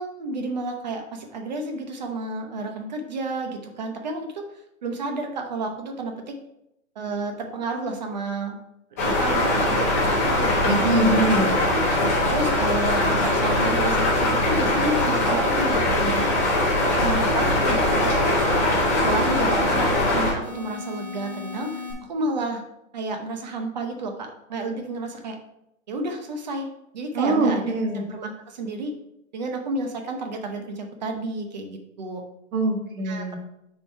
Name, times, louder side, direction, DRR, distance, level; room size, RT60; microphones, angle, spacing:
voice 1, 0.0-4.4 4.8-6.4 7.0-8.6 9.0-10.9 11.6-11.7 12.2-16.3 17.0-18.4 18.8-22.6 22.9-25.4 25.9-26.7 26.9-27.7 27.9-28.9 29.3-32.2 33.0-33.4, right 2 dB, 35° right, 4 dB, 0.9 m, -31 dB
sound 1, 9.0-20.3, left 1 dB, 10° left, 0.6 m, -21 dB
voice 2, 10.7-11.5 27.2-28.0 32.5-33.4, right 2 dB, 85° right, 2 dB, 1.8 m, -23 dB
sound 2, 16.4-17.9 18.4-19.9 20.4-21.9, left 4 dB, 5° right, 2.3 m, -40 dB
6.6 x 4.5 x 4.7 m, 0.83 s
hypercardioid pair, 175°, 40 cm